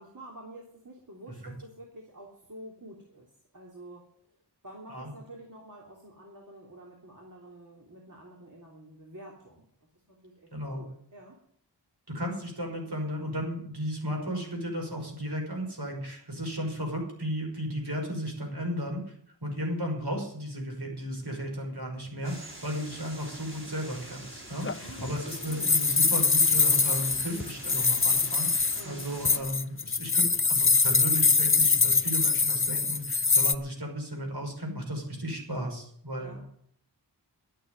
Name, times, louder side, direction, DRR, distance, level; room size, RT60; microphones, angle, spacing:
voice 1, 0.0-4.0 4.6-9.7 10.1-11.4 24.7-25.7 28.8-29.6 36.2-36.4, right 1 dB, 45° right, -3 dB, 3.3 m, -48 dB
voice 2, 10.5-10.9 12.1-19.1 19.4-36.5, equal, 65° right, 1 dB, 5.9 m, -34 dB
sound 1, 22.2-29.4, right 1 dB, 30° right, 4.4 m, -45 dB
sound 2, 24.6-33.5, left 4 dB, 30° left, 0.7 m, -24 dB
12.0 x 9.2 x 9.5 m, 0.65 s
wide cardioid pair, 60°, 42 cm